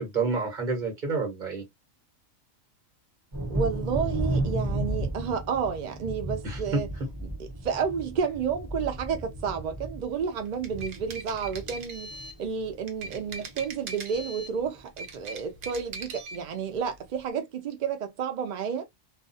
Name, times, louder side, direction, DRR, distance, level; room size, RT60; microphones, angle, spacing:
voice 1, 0.0-1.6 6.4-6.8, right 4 dB, 40° right, 1.2 m, -29 dB
Thunder, 3.3-12.7 13.0-13.7 14.1-14.2 14.6-14.8, right 1 dB, 20° right, 1.1 m, -34 dB
voice 2, 3.5-6.9 7.2-18.8, right 6 dB, 75° right, 0.4 m, -31 dB
sound 1, 10.5-12.4 12.9-14.6 14.9-16.4, right 3 dB, 55° right, 0.8 m, -40 dB
2.4 x 2.3 x 2.5 m
omnidirectional pair, 1.4 m